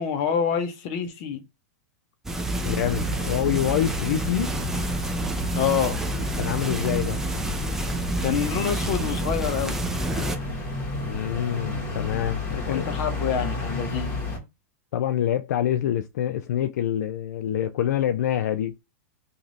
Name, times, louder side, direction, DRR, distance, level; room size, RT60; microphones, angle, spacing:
voice 1, 0.0-1.4 5.6-6.0 8.2-9.8 12.5-14.1, left 7 dB, 45° left, 1.0 m, -26 dB
sound 1, 2.2-10.3, right 1 dB, 5° right, 0.6 m, -29 dB
voice 2, 2.6-4.5 6.4-7.2 11.0-12.9 14.9-18.8, left 10 dB, 80° left, 0.4 m, -26 dB
sound 2, 2.8-14.4, left 2 dB, 25° left, 1.5 m, -32 dB
3.0 x 2.6 x 3.9 m
supercardioid pair, 140°, 9 cm